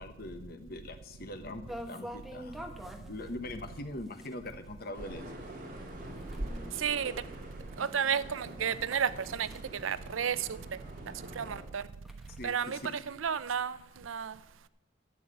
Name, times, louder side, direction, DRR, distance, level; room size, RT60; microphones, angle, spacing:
voice 1, 0.0-2.6 3.0-5.3 12.4-13.0, left 1 dB, 50° left, 1.1 m, -42 dB
sound 1, 1.7-10.8 11.2-11.3 11.7-13.4, equal, ahead, 1.0 m, -48 dB
sound 2, 4.9-11.6, right 1 dB, 45° right, 2.4 m, -44 dB
voice 2, 6.8-7.1 7.8-10.5 11.4-11.8 12.4-12.8 13.1-13.8 14.0-14.4, right 7 dB, 90° right, 0.5 m, -32 dB
11.0 x 7.4 x 8.3 m
head